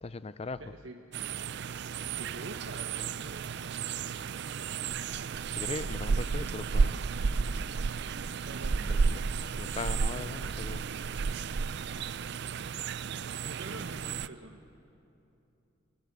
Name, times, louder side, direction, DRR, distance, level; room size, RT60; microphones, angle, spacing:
voice 1, 0.0-0.6 5.5-7.0 8.7-10.8, left 3 dB, 30° left, 0.5 m, -39 dB
voice 2, 0.6-1.0 2.2-3.6 8.4-9.3 13.3-14.6, right 2 dB, 75° right, 1.4 m, -46 dB
sound 1, 1.1-14.3, right 5 dB, 60° right, 0.5 m, -32 dB
28.5 x 19.0 x 8.2 m
head